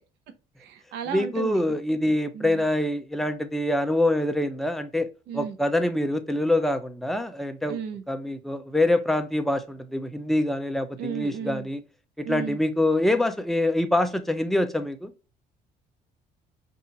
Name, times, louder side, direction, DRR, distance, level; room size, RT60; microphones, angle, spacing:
voice 1, 0.6-1.6 2.3-2.6 5.3-5.6 7.7-8.0 11.0-11.7 12.2-12.6, right 7 dB, 85° right, 0.8 m, -34 dB
voice 2, 1.1-5.1 5.3-7.8 8.1-11.8 12.2-15.1, left 1 dB, ahead, 0.6 m, -25 dB
5.6 x 2.6 x 2.8 m
cardioid pair, 110°, 17 cm